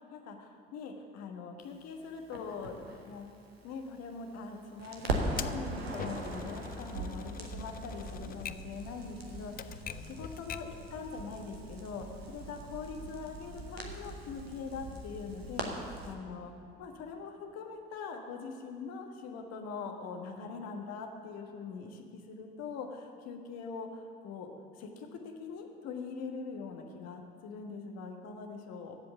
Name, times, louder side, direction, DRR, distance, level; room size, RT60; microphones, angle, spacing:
voice 1, 0.1-2.7 3.1-3.3 3.6-16.5 16.8-29.0, left 5 dB, 60° left, 3 dB, 1.4 m, -43 dB
Crackle, 2.3-4.5 4.8-16.1, right 2 dB, 85° right, 1.0 m, -40 dB
Typewriter, 5.4-10.8, left 9 dB, 30° left, 0.4 m, -44 dB
15.0 x 5.2 x 8.1 m, 2.3 s
figure-of-eight pair, 50°, 30 cm